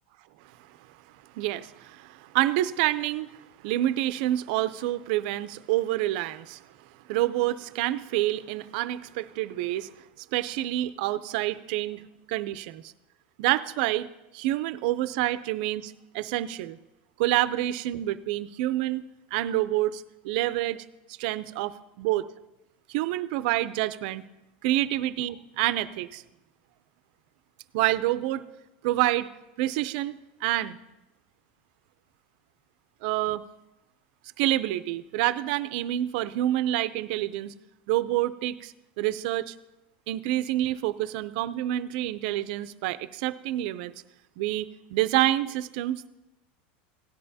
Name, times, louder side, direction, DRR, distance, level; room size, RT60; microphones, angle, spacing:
voice 1, 1.3-3.3 3.6-6.6 7.1-9.9 10.3-12.0 12.3-12.9 13.4-14.1 14.3-16.8 17.2-19.0 19.3-20.8 21.2-22.3 22.9-24.2 24.6-26.2 27.7-28.5 28.8-29.3 29.6-30.8 33.0-33.4 34.4-37.5 37.9-39.5 40.1-43.9 44.4-46.1, right 15 dB, 60° right, 14 dB, 0.5 m, -27 dB
17.0 x 11.0 x 2.8 m, 0.99 s
supercardioid pair, 155°, 6 cm